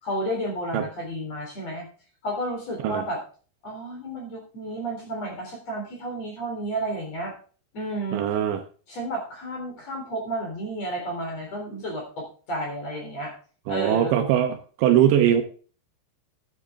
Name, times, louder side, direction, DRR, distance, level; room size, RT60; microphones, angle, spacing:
voice 1, 0.0-1.9 2.2-3.2 3.6-7.3 7.7-8.3 8.9-13.3 13.7-14.1, right 1 dB, 35° left, 1 dB, 4.1 m, -31 dB
voice 2, 8.1-8.6 13.7-15.4, right 10 dB, 75° right, 6 dB, 3.0 m, -21 dB
10.5 x 9.9 x 3.5 m, 0.38 s
omnidirectional pair, 5.6 m